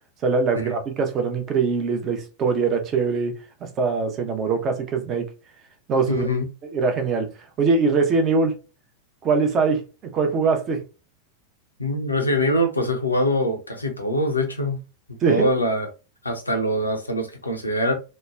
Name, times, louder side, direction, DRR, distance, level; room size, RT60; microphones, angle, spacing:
voice 1, 0.2-5.3 5.9-6.3 6.7-7.3 7.6-8.5 9.2-9.8 10.1-10.8 15.2-15.5, right 4 dB, 30° right, 0.6 m, -22 dB
voice 2, 6.1-6.5 11.8-14.8 15.3-15.9 16.2-17.9, left 1 dB, 80° left, 0.6 m, -23 dB
3.0 x 2.1 x 2.3 m
figure-of-eight pair, 90°, 0 cm